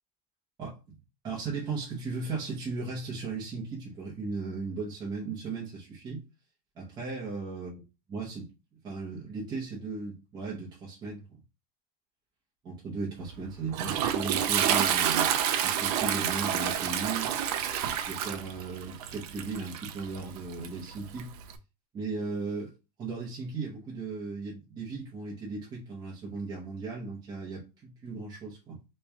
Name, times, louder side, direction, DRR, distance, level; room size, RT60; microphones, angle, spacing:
voice 1, 0.6-0.9 1.2-6.2 6.8-7.8 8.1-8.5 8.8-11.2 12.6-15.3 15.6-17.3 17.9-21.3 21.9-22.7 23.0-28.8, right 4 dB, 20° right, 0.9 m, -36 dB
Toilet flush, 13.2-21.6, right 9 dB, 80° right, 0.6 m, -29 dB
3.2 x 2.9 x 3.5 m
cardioid pair, 170°, 20 cm